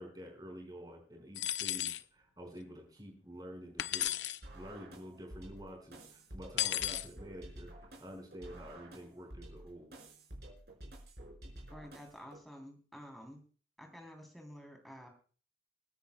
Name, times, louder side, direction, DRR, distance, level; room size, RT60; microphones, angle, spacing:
voice 1, 0.0-4.2 4.5-9.9, equal, 20° right, 2 dB, 5.0 m, -49 dB
sound 1, 1.4-2.0 3.8-4.4 6.6-7.1, left 12 dB, 85° left, 0.6 m, -34 dB
sound 2, 4.4-12.4, right 1 dB, 65° right, 4.9 m, -51 dB
voice 2, 11.7-13.4 13.8-15.1, equal, ahead, 2 dB, 3.2 m, -51 dB
28.0 x 10.0 x 2.2 m, 0.40 s
head